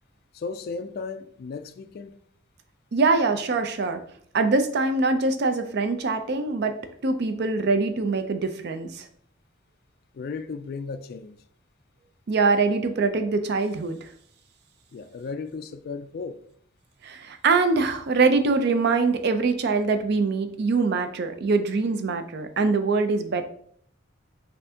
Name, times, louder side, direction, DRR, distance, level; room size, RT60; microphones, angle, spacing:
voice 1, 0.3-2.2 10.1-11.4 14.9-16.4, left 4 dB, 50° left, 0.3 m, -35 dB
voice 2, 2.9-4.0 4.3-6.7 7.0-9.1 12.3-14.0 17.0-23.5, right 4 dB, 55° right, 0.4 m, -23 dB
5.4 x 2.6 x 2.7 m
head